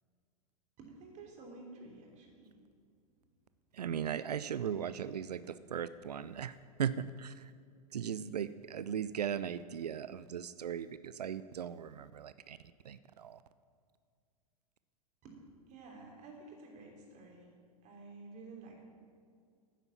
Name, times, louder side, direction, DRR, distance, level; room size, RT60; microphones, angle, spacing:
voice 1, 0.8-2.5 4.6-4.7 15.2-15.3 15.7-17.5 17.8-18.9, right 3 dB, 35° right, 0 dB, 3.4 m, -51 dB
voice 2, 3.8-6.5 6.8-6.9 7.2-7.3 7.9-12.6 12.9-13.4, right 8 dB, 80° right, 14 dB, 0.4 m, -38 dB
10.0 x 9.3 x 7.1 m, 2.2 s
figure-of-eight pair, 95°, 20 cm